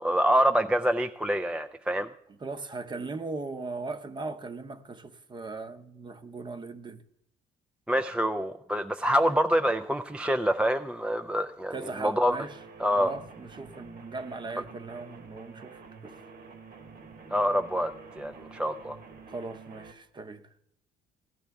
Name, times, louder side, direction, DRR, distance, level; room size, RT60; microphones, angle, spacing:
voice 1, 0.0-2.1 7.9-12.4 12.8-13.1 17.3-17.9 18.2-19.0, equal, 5° right, 0.4 m, -26 dB
voice 2, 2.4-7.0 11.7-12.6 13.0-16.1 19.3-20.4, right 3 dB, 25° right, 0.8 m, -38 dB
sound 1, 12.3-19.9, right 4 dB, 65° right, 1.5 m, -48 dB
16.5 x 10.5 x 3.5 m
cardioid pair, 110°, 17 cm